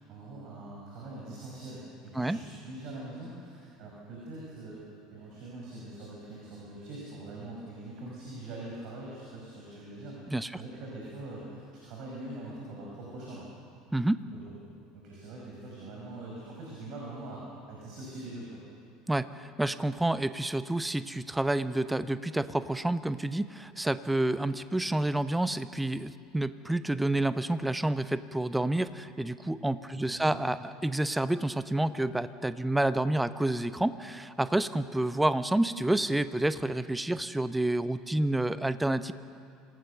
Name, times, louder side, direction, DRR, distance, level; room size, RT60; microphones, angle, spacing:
voice 1, 0.1-4.8 5.1-10.2 10.6-13.5 14.9-18.6 29.9-30.4, right 2 dB, 50° right, -3 dB, 5.5 m, -43 dB
voice 2, 19.1-39.1, right 1 dB, 5° right, 13 dB, 0.9 m, -29 dB
26.0 x 18.0 x 6.8 m, 2.4 s
figure-of-eight pair, 70°, 0 cm